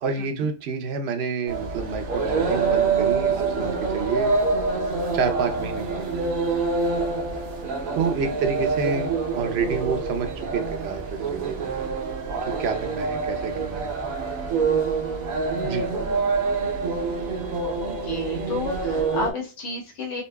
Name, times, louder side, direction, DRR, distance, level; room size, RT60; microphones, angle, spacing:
voice 1, 0.0-4.4 5.1-6.1 8.0-9.1 9.3-11.7 12.4-13.9 15.6-15.9, right 5 dB, 60° right, 7 dB, 0.8 m, -28 dB
sound 1, 1.5-19.3, right 4 dB, 85° right, 1.2 m, -26 dB
voice 2, 8.0-8.3 16.1-16.2 18.0-20.2, left 3 dB, 65° left, -2 dB, 1.4 m, -32 dB
4.0 x 2.5 x 2.2 m, 0.30 s
omnidirectional pair, 1.4 m